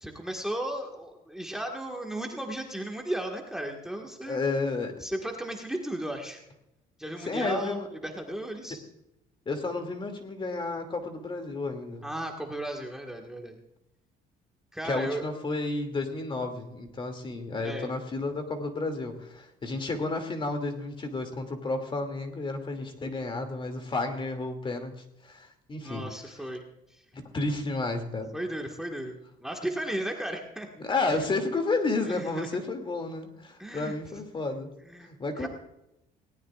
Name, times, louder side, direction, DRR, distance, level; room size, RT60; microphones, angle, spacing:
voice 1, 0.0-4.4 5.0-6.4 7.0-8.8 12.0-13.6 14.7-15.2 17.6-17.9 25.8-26.6 28.3-30.7 31.1-31.2 32.0-32.5 33.6-33.9 34.9-35.1 35.4-35.5, right 1 dB, 5° right, 1 dB, 1.7 m, -35 dB
voice 2, 4.2-4.9 7.2-7.9 9.5-12.1 14.8-24.9 25.2-26.1 27.1-28.3 30.8-34.7 35.1-35.5, left 3 dB, 30° left, 5 dB, 2.5 m, -31 dB
19.5 x 18.0 x 2.5 m, 0.88 s
cardioid pair, 110°, 17 cm